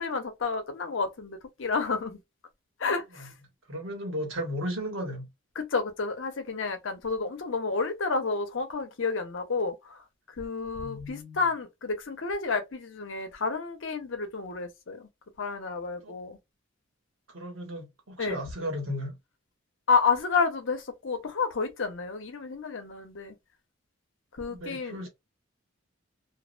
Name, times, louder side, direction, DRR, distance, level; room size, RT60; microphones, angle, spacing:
voice 1, 0.0-2.2 2.8-3.3 5.6-10.0 10.4-15.1 15.4-16.4 18.2-18.4 19.9-23.3 24.4-25.1, left 4 dB, 70° left, 0.7 m, -30 dB
voice 2, 3.7-5.3 10.8-11.4 16.0-16.1 17.3-19.1 24.5-25.1, equal, 75° right, 1.2 m, -35 dB
2.5 x 2.1 x 2.4 m
head